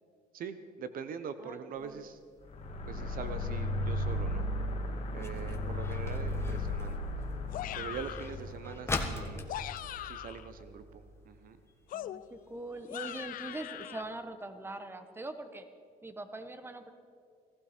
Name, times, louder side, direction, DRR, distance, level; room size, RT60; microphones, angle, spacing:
voice 1, 0.3-2.2 2.9-4.5 5.1-7.0 7.7-9.4 10.0-11.6, right 6 dB, 55° right, 11 dB, 0.9 m, -43 dB
voice 2, 1.4-2.1 5.2-5.4 11.9-15.6 16.0-16.9, right 2 dB, 15° right, 9 dB, 1.1 m, -43 dB
sound 1, 1.8-11.0 11.3-11.4 11.7-12.1 12.6-12.7 13.2-13.3 13.6-13.7 14.0-14.1, left 2 dB, 15° left, 1.5 m, -42 dB
sound 2, 2.4-10.7, left 1 dB, 40° left, 2.4 m, -36 dB
sound 3, 7.5-8.4 9.3-10.5 11.9-14.0, left 12 dB, 55° left, 0.4 m, -41 dB
19.0 x 15.0 x 4.4 m, 2.2 s
cardioid pair, 110°, 17 cm